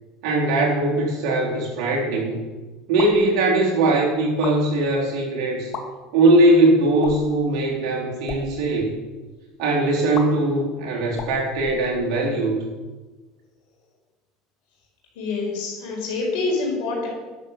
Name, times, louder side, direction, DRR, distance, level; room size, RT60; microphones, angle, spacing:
voice 1, 0.2-2.4 2.9-5.7 6.1-8.9 9.6-12.6, right 2 dB, 65° right, -3 dB, 4.1 m, -20 dB
sound 1, 2.9-3.3 4.3-4.6 5.6-5.8 7.0-7.4 8.1-8.5 10.1-10.3 11.1-12.3, left 6 dB, 55° left, 2.0 m, -34 dB
voice 2, 15.2-17.1, left 3 dB, 75° left, -2 dB, 5.1 m, -26 dB
11.5 x 7.6 x 7.5 m, 1.3 s
supercardioid pair, 95°, 0 cm